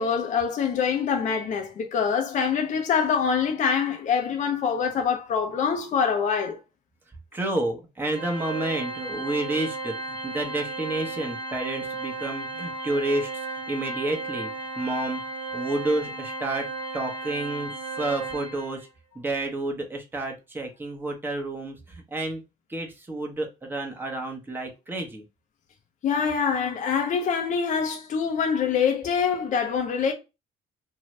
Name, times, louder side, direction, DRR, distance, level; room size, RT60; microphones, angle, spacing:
voice 1, 0.0-6.6 26.0-30.1, left 6 dB, 45° left, 0.7 m, -25 dB
voice 2, 7.3-13.3 13.7-14.5 14.8-15.2 15.5-16.7 16.9-18.8 19.1-22.4 22.7-25.2, right 2 dB, 10° right, 0.9 m, -30 dB
Organ, 8.1-18.9, right 2 dB, 55° right, 0.9 m, -34 dB
2.7 x 2.3 x 3.1 m
cardioid pair, 110°, 17 cm